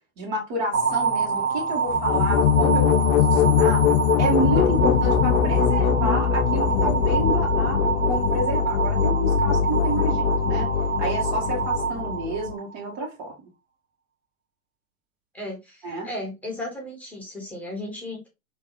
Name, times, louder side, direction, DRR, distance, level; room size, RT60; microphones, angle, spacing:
voice 1, 0.2-3.9 4.2-10.7 11.0-13.3 15.8-16.1, right 2 dB, 45° right, 1.8 m, -30 dB
sound 1, 0.7-12.9, right 5 dB, 65° right, 1.1 m, -27 dB
sound 2, 1.9-12.5, left 8 dB, 60° left, 0.5 m, -22 dB
voice 2, 15.3-18.3, left 1 dB, 5° left, 1.3 m, -35 dB
4.8 x 2.9 x 2.5 m
hypercardioid pair, 120°, 43 cm